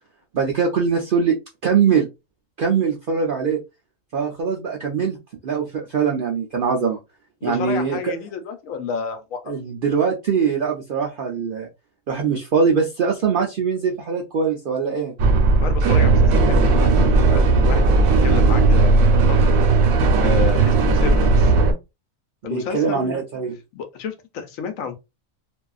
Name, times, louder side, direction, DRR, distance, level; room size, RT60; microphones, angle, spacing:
voice 1, 0.3-1.4 1.6-2.1 2.6-3.6 4.1-5.2 5.4-7.0 7.4-8.1 9.5-11.7 12.1-15.1 22.4-23.5, right 6 dB, 65° right, 0.5 m, -22 dB
voice 2, 7.4-9.5 15.6-19.0 19.3-19.5 20.2-21.5 22.4-23.2 23.7-25.0, left 6 dB, 75° left, 1.0 m, -30 dB
sound 1, 15.2-21.7, right 3 dB, 85° right, 1.1 m, -16 dB
2.6 x 2.3 x 2.3 m
omnidirectional pair, 1.4 m